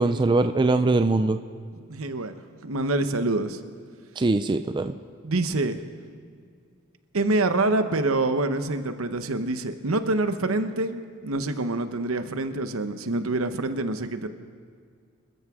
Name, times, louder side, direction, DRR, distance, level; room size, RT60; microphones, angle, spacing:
voice 1, 0.0-1.4 4.2-4.9, right 2 dB, 20° right, 8 dB, 0.4 m, -22 dB
voice 2, 1.9-2.3 2.6-3.6 5.2-5.8 7.1-14.3, right 2 dB, 75° right, 9 dB, 0.9 m, -26 dB
26.5 x 13.5 x 3.7 m, 2.1 s
head